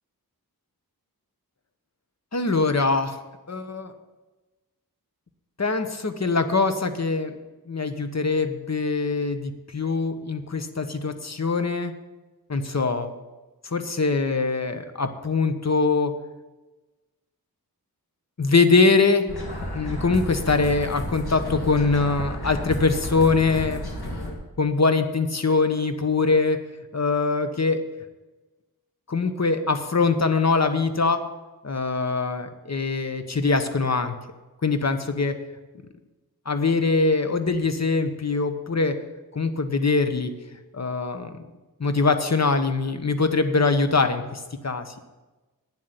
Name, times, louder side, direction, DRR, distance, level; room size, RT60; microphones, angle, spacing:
voice 1, 2.3-3.2 3.5-3.9 5.6-7.3 7.7-11.9 12.5-13.1 13.6-16.1 18.4-19.3 19.7-23.8 24.6-26.6 26.9-27.8 29.1-31.2 31.6-34.1 34.6-35.3 36.5-38.9 39.3-40.3 40.7-41.4 41.8-44.9, left 4 dB, 45° left, 8 dB, 1.1 m, -23 dB
sound 1, 19.3-24.3, equal, 85° left, 2.5 m, -32 dB
9.4 x 7.6 x 8.2 m, 1.2 s
wide cardioid pair, 65°, 37 cm